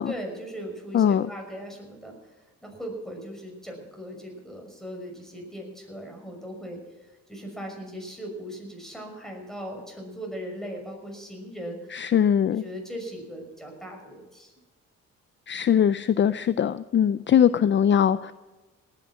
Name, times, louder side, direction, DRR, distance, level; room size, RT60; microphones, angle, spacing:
voice 1, 0.1-12.0 12.5-14.5, equal, ahead, 1 dB, 6.0 m, -39 dB
voice 2, 0.9-1.3 11.9-12.6 15.5-18.3, left 9 dB, 40° left, 15 dB, 0.5 m, -21 dB
18.5 x 9.9 x 6.1 m, 1.2 s
cardioid pair, 90°, 30 cm